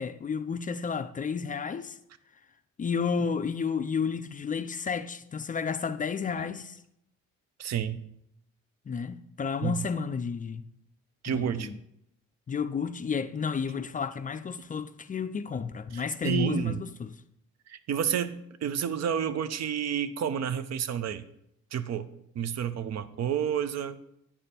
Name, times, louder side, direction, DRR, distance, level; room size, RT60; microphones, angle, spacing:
voice 1, 0.0-2.0 2.8-6.8 8.9-10.6 11.3-11.8 12.5-17.1, left 6 dB, 30° left, 0.4 m, -31 dB
voice 2, 7.6-8.0 9.6-9.7 11.2-11.7 15.9-16.8 17.7-21.2 21.7-22.1 22.4-24.0, right 8 dB, 60° right, 0.6 m, -30 dB
8.6 x 5.1 x 4.2 m
cardioid pair, 90°, 30 cm